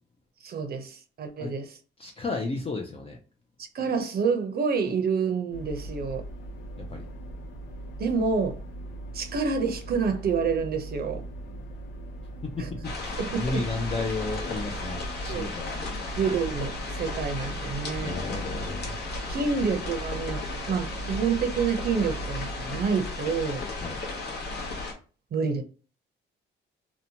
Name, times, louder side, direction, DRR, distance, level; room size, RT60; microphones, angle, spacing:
voice 1, 0.4-1.8 3.7-6.2 8.0-8.6 9.1-11.2 12.6-12.7 13.2-13.6 15.3-15.4 16.1-18.2 19.3-20.4 20.7-23.6 25.3-25.6, right 5 dB, 50° right, 0.6 m, -28 dB
voice 2, 2.0-3.2 6.9-7.0 12.4-15.8 18.0-18.9 23.8-24.0, left 3 dB, 30° left, 0.4 m, -33 dB
sound 1, 5.5-23.1, right 1 dB, 90° left, 0.6 m, -39 dB
sound 2, 12.8-24.9, left 3 dB, 55° left, 0.8 m, -35 dB
2.8 x 2.1 x 2.7 m
cardioid pair, 90°, 20 cm